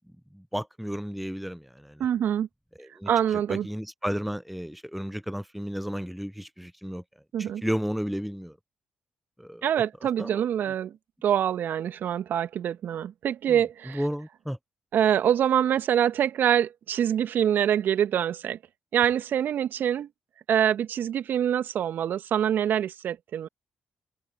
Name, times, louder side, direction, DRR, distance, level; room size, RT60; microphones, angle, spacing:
voice 1, 0.3-2.0 2.8-3.1 3.5-7.0 7.4-8.5 9.4-9.6 10.2-10.4 13.5-13.6 13.9-14.6, equal, ahead, 0.9 m, -33 dB
voice 2, 2.0-2.5 3.1-3.7 7.3-7.6 9.6-10.9 11.2-14.0 14.9-18.6 18.9-20.1 20.5-23.5, right 9 dB, 60° right, 2.4 m, -25 dB
hypercardioid pair, 40°, 4 cm